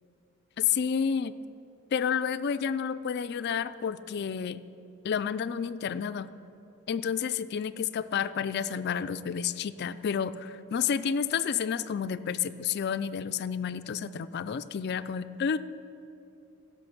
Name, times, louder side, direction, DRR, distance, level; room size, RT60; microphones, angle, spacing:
voice 1, 0.6-1.3 1.9-4.6 5.0-6.3 6.9-15.6, left 7 dB, 50° left, 14 dB, 0.3 m, -30 dB
16.0 x 6.2 x 5.9 m, 2.7 s
head